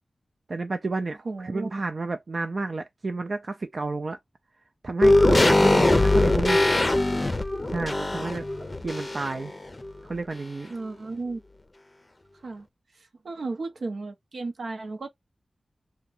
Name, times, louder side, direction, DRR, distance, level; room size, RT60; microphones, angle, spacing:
voice 1, 0.5-4.2 4.8-6.7 7.7-8.5 8.8-9.5 10.0-10.7, right 3 dB, 55° right, 0.4 m, -30 dB
voice 2, 1.2-1.7 10.7-11.4 12.4-12.7 13.2-15.1, right 3 dB, 80° right, 0.7 m, -34 dB
sound 1, 5.0-9.5 9.8-9.9, left 2 dB, 30° left, 0.5 m, -21 dB
2.9 x 2.2 x 3.7 m
wide cardioid pair, 65°, 0 cm